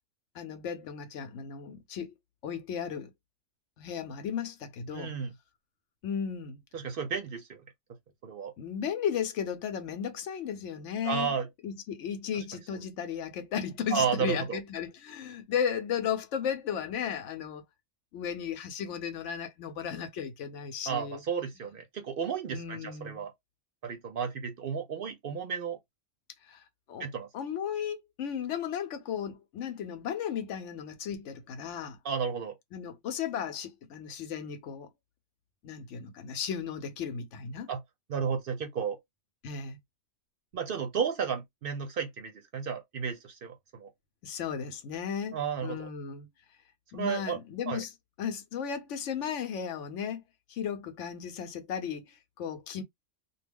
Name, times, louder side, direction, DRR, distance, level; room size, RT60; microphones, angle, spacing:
voice 1, 0.3-2.1 2.4-3.1 3.8-5.1 6.0-6.6 8.6-11.3 11.6-17.6 18.1-21.2 22.5-23.2 26.5-26.6 26.9-27.0 27.3-32.0 32.7-34.9 35.6-37.7 39.4-39.8 44.2-45.4 45.6-46.3 46.9-47.9 48.2-50.2 50.5-52.8, left 8 dB, 80° left, 1.0 m, -35 dB
voice 2, 4.9-5.3 6.7-7.6 8.2-8.5 11.0-11.5 12.4-12.5 13.9-14.6 20.9-23.3 23.8-25.8 27.0-27.3 32.0-32.5 37.7-37.8 38.1-39.0 40.5-43.9 45.3-45.9 46.9-47.4 47.7-47.8, right 6 dB, 60° right, 0.7 m, -33 dB
2.4 x 2.1 x 3.4 m
omnidirectional pair, 1.2 m